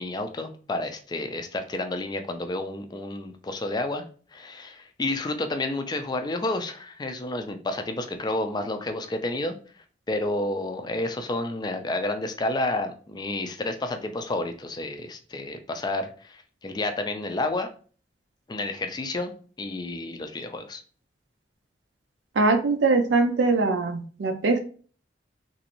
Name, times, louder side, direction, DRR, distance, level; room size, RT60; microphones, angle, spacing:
voice 1, 0.0-4.0 4.3-9.6 10.1-17.7 18.5-20.8, left 2 dB, 25° left, 7 dB, 0.4 m, -30 dB
voice 2, 22.4-24.6, right 3 dB, 90° right, 6 dB, 0.4 m, -22 dB
3.0 x 2.5 x 2.9 m, 0.41 s
head